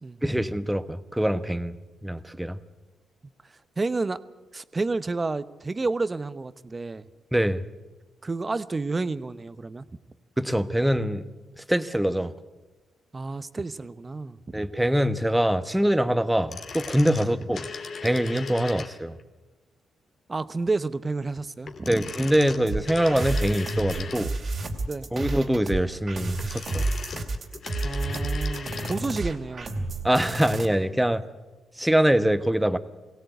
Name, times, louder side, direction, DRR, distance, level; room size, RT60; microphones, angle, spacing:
voice 1, 0.2-1.7 2.0-2.6 7.3-7.6 10.4-11.2 11.6-12.3 14.5-17.6 18.0-19.2 21.9-24.3 25.1-26.9 30.0-31.2 31.8-32.8, equal, 5° right, 11 dB, 1.2 m, -24 dB
voice 2, 3.8-4.2 4.5-7.1 8.2-9.8 13.1-14.7 20.3-22.0 24.9-25.1 27.8-29.9, right 3 dB, 30° right, 14 dB, 0.9 m, -30 dB
sound 1, 16.3-19.2 21.6-24.5 26.2-29.0 29.3-29.4, left 5 dB, 55° left, 2.0 m, -38 dB
sound 2, 22.7-30.7, right 2 dB, 50° right, 2.6 m, -30 dB
22.0 x 17.0 x 8.1 m, 1.2 s
supercardioid pair, 55°, 0 cm